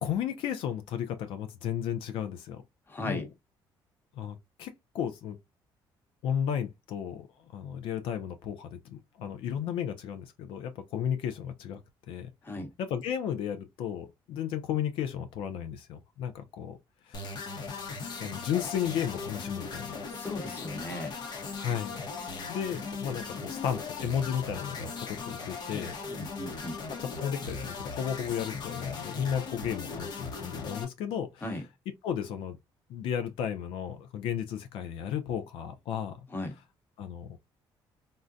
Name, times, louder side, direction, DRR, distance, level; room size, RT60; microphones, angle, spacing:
voice 1, 0.0-2.6 3.0-3.3 4.2-5.4 6.2-7.3 7.5-11.8 12.1-12.3 12.8-16.8 17.1-17.3 18.2-20.0 21.6-21.9 22.5-25.9 27.0-31.4 32.0-32.6 32.9-36.3 37.0-37.4, left 9 dB, 80° left, 0.5 m, -34 dB
voice 2, 2.9-3.3 12.4-12.7 20.1-21.1 26.1-26.8 31.4-31.6 36.3-36.5, left 2 dB, 25° left, 0.9 m, -37 dB
sound 1, 17.1-30.8, left 4 dB, 55° left, 0.8 m, -38 dB
3.7 x 2.1 x 2.5 m
cardioid pair, 130°, 9 cm